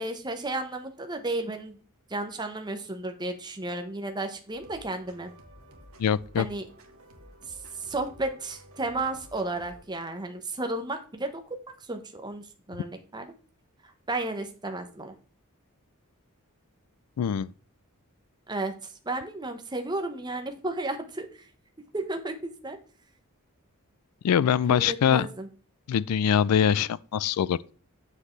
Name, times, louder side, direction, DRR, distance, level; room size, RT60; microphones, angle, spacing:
voice 1, 0.0-1.8 2.1-5.3 6.4-6.7 7.5-13.3 13.8-15.1 18.5-18.7 19.0-21.5 21.9-22.8 24.7-25.5, right 2 dB, 20° right, 0.9 m, -33 dB
sound 1, 4.5-9.8, equal, 70° right, 1.5 m, -52 dB
voice 2, 6.0-6.5 17.2-17.5 24.2-25.3 25.9-27.7, left 8 dB, 90° left, 0.4 m, -23 dB
7.3 x 6.5 x 3.2 m
head